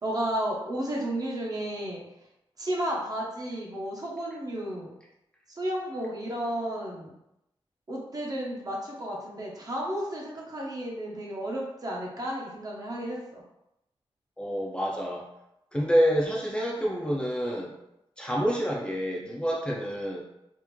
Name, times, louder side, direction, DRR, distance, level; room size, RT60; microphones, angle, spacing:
voice 1, 0.0-2.0 2.6-4.9 5.6-7.1 7.9-13.4, right 1 dB, 40° right, -2 dB, 0.8 m, -32 dB
voice 2, 14.4-15.3 15.7-17.7 18.2-20.2, equal, 10° left, -4 dB, 0.5 m, -27 dB
3.5 x 2.5 x 3.1 m, 0.86 s
wide cardioid pair, 150°, 10 cm